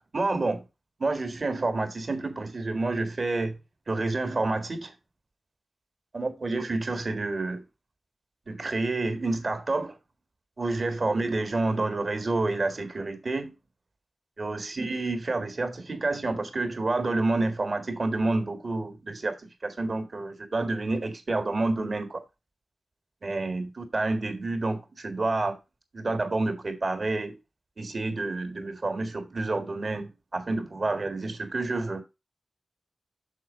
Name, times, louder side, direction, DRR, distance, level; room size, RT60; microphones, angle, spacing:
voice 1, 0.1-0.6 1.0-3.6 3.9-4.9 6.1-7.6 8.5-9.9 10.6-13.5 14.4-19.4 19.6-22.2 23.2-25.6 25.9-27.4 27.8-32.0, right 2 dB, 55° right, 1.8 m, -29 dB
6.4 x 4.6 x 5.5 m
cardioid pair, 55°, 0 cm